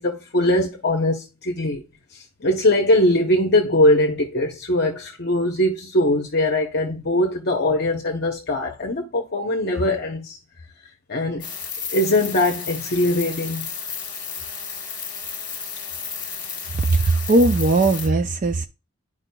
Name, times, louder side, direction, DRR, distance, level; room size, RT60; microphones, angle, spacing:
voice 1, 0.0-1.8 2.1-10.4 11.1-11.5 11.9-13.7, left 1 dB, 50° left, 0.8 m, -21 dB
sound 1, 11.4-18.1, left 6 dB, 20° left, 1.4 m, -33 dB
voice 2, 16.7-18.7, right 2 dB, 35° right, 0.4 m, -18 dB
10.0 x 4.9 x 2.2 m
head